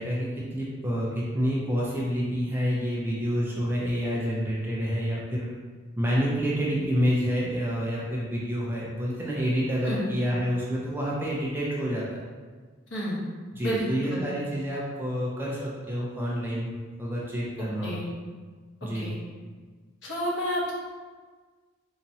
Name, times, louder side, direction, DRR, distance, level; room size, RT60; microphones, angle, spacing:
voice 1, 0.0-5.5 6.0-12.0 13.5-17.9 18.8-19.2, equal, 10° right, -5 dB, 0.5 m, -28 dB
voice 2, 20.0-20.7, equal, 65° left, -5 dB, 1.0 m, -30 dB
4.0 x 2.8 x 2.7 m, 1.5 s
head